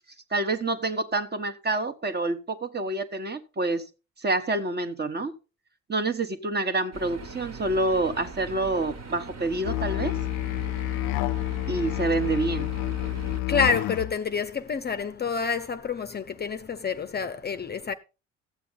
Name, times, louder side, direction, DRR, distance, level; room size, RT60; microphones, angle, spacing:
voice 1, 0.3-3.8 4.2-5.3 5.9-10.2 11.7-12.8, right 2 dB, 25° right, 1.3 m, -27 dB
sound 1, 6.9-13.4, right 4 dB, 45° right, 1.7 m, -41 dB
Musical instrument, 9.7-14.2, left 16 dB, 65° left, 0.6 m, -29 dB
voice 2, 13.3-17.9, left 6 dB, 25° left, 0.7 m, -28 dB
13.0 x 8.4 x 4.0 m
hypercardioid pair, 55°, 38 cm